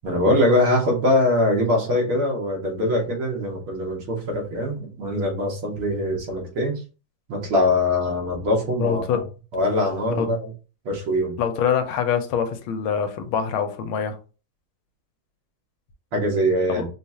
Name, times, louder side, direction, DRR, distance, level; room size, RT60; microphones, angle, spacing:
voice 1, 0.0-6.8 7.3-9.2 9.5-10.5 10.9-11.4 16.1-16.9, left 1 dB, 80° right, 2.3 m, -22 dB
voice 2, 8.8-9.3 10.2-10.3 11.4-14.2 16.7-16.8, left 7 dB, 85° left, 1.5 m, -24 dB
5.0 x 2.4 x 2.8 m
omnidirectional pair, 2.2 m